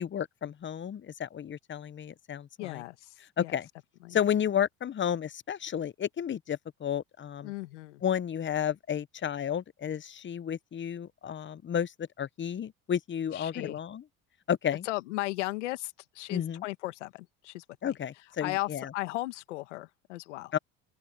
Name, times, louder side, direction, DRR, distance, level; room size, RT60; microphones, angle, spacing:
voice 1, 0.0-2.8 3.4-3.7 4.1-7.5 8.0-14.0 14.5-14.9 16.3-16.6 17.8-18.9 20.5-20.6, left 9 dB, 35° left, 0.9 m, -32 dB
voice 2, 2.6-3.5 4.0-4.2 7.4-8.0 13.3-13.8 14.8-17.6 18.4-20.5, left 19 dB, 90° left, 1.8 m, -36 dB
open air
supercardioid pair, 75°, 35 cm